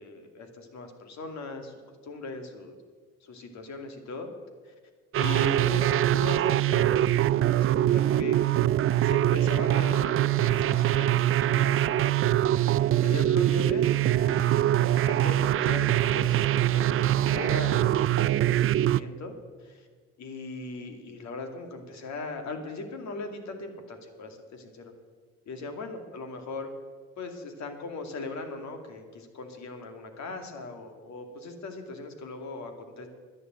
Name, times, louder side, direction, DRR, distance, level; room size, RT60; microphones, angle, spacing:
voice 1, 0.0-2.7 3.2-4.3 4.6-4.7 5.2-8.4 9.0-12.5 13.0-19.3 19.6-19.9 20.2-24.9 25.5-26.7 27.2-33.1, left 3 dB, 60° left, 5 dB, 2.5 m, -39 dB
sound 1, 5.1-19.0, right 12 dB, 45° right, 0.5 m, -23 dB
11.0 x 10.5 x 8.0 m, 1.5 s
hypercardioid pair, 60°, 31 cm